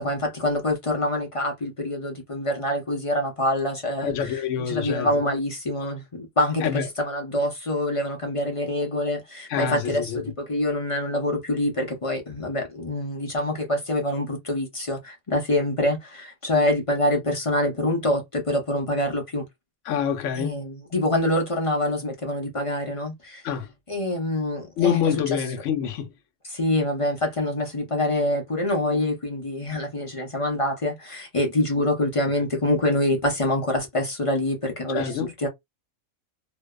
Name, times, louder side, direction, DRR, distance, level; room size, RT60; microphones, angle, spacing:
voice 1, 0.0-4.4 4.7-19.4 20.3-23.4 23.9-25.1 26.5-35.5, left 1 dB, 35° left, 0.5 m, -25 dB
voice 2, 4.0-5.1 6.6-6.9 9.5-10.2 19.9-20.6 23.4-23.7 24.8-26.1 34.9-35.3, left 8 dB, 70° left, 0.9 m, -26 dB
2.6 x 2.1 x 2.2 m
omnidirectional pair, 1.4 m